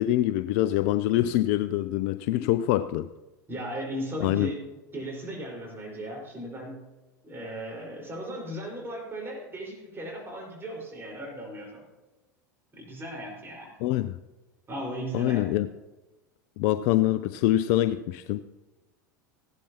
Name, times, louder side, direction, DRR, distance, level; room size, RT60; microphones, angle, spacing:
voice 1, 0.0-3.1 4.2-4.5 13.8-14.2 15.1-15.7 16.6-18.4, left 14 dB, 55° left, 13 dB, 0.4 m, -25 dB
voice 2, 3.5-4.6 4.9-6.9 7.2-11.8 12.7-13.7 14.7-15.5, equal, 25° right, -1 dB, 4.8 m, -36 dB
16.0 x 11.5 x 2.9 m, 1.1 s
figure-of-eight pair, 80°, 10 cm